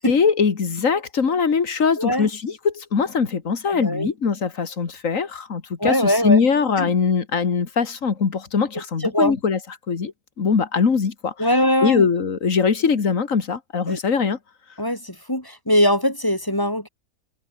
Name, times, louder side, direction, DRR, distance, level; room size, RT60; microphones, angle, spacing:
voice 1, 0.1-9.6 9.9-10.1 10.4-11.5 11.8-14.4, left 5 dB, 55° left, 2.3 m, -21 dB
voice 2, 2.0-2.3 3.7-4.1 5.8-6.4 6.8-6.9 9.0-9.4 11.4-12.1 13.9-14.0 14.8-16.9, equal, 15° left, 3.0 m, -21 dB
omnidirectional pair, 1.6 m